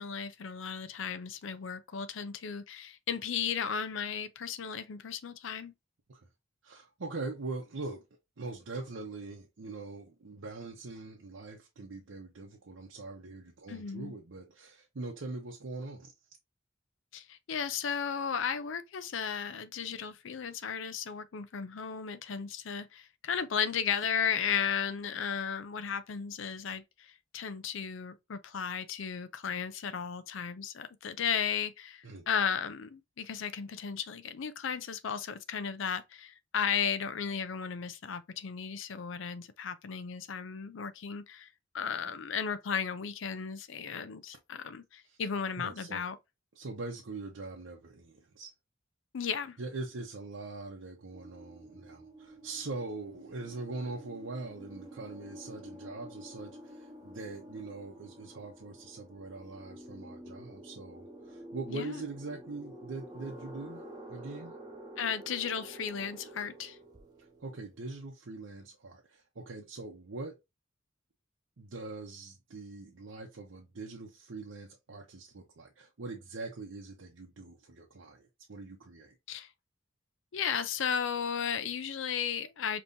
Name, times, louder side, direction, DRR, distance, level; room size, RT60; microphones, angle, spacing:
voice 1, 0.0-5.7 13.7-14.1 17.1-26.8 27.3-41.5 41.7-46.2 49.1-49.6 61.7-62.0 65.0-66.8 79.3-79.5 80.3-82.8, left 7 dB, 75° left, 0.5 m, -35 dB
voice 2, 6.6-8.0 8.4-16.1 32.0-32.2 45.0-45.2 45.6-46.0 46.6-48.5 49.6-63.8 64.1-64.5 67.4-70.4 71.6-79.1, right 3 dB, 80° right, 0.8 m, -42 dB
sound 1, 51.1-68.0, right 1 dB, 20° right, 1.2 m, -49 dB
5.3 x 3.0 x 2.6 m
head